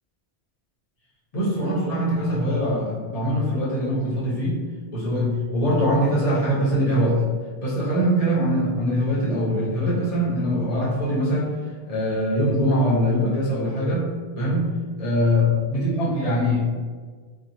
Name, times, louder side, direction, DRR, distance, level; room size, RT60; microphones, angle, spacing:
voice 1, 1.3-4.6 4.9-7.2 7.6-11.5 11.9-16.7, equal, 40° left, -6 dB, 0.8 m, -22 dB
2.8 x 2.4 x 2.6 m, 1.5 s
omnidirectional pair, 1.1 m